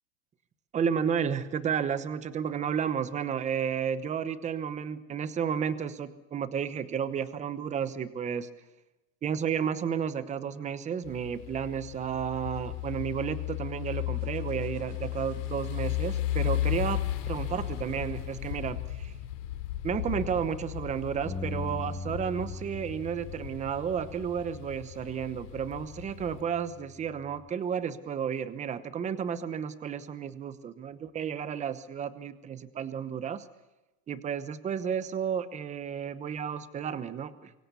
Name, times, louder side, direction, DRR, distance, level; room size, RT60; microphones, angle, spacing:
voice 1, 0.7-8.5 9.2-19.1 19.8-33.4 34.1-37.5, right 7 dB, 15° right, 14 dB, 0.9 m, -32 dB
sound 1, 11.0-26.4, left 14 dB, 75° left, 3.4 m, -35 dB
sound 2, 14.1-18.5, right 6 dB, 70° right, 4.0 m, -51 dB
Bass guitar, 21.2-27.5, left 3 dB, 5° left, 1.4 m, -42 dB
24.5 x 24.0 x 6.9 m, 1.0 s
supercardioid pair, 155°, 48 cm